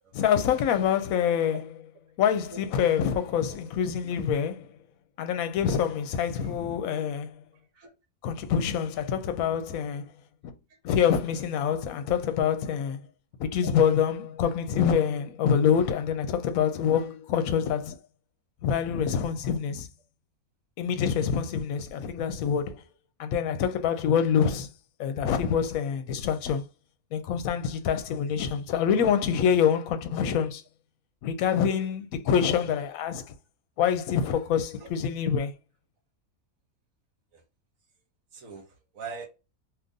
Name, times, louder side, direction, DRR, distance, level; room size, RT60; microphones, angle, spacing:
voice 1, 0.1-1.6 2.2-4.6 5.2-7.3 8.2-10.1 10.8-13.0 13.4-18.0 18.6-19.9 20.8-22.8 23.2-24.7 25.0-26.6 27.1-30.6 31.2-33.2 33.8-35.5, left 8 dB, 75° left, 1.0 m, -26 dB
voice 2, 38.3-38.6 38.9-39.3, right 5 dB, 70° right, 1.2 m, -41 dB
2.8 x 2.5 x 3.6 m
omnidirectional pair, 1.5 m